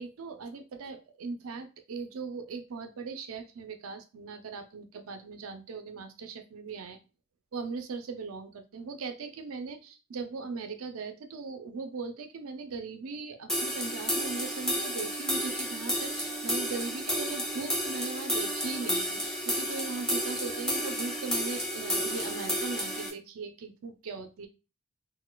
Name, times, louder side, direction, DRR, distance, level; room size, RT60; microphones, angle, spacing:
voice 1, 0.0-7.0 7.5-24.5, right 4 dB, 75° right, 7 dB, 0.5 m, -39 dB
sound 1, 13.5-23.1, equal, 5° left, 0.9 m, -31 dB
4.1 x 2.2 x 2.2 m, 0.31 s
head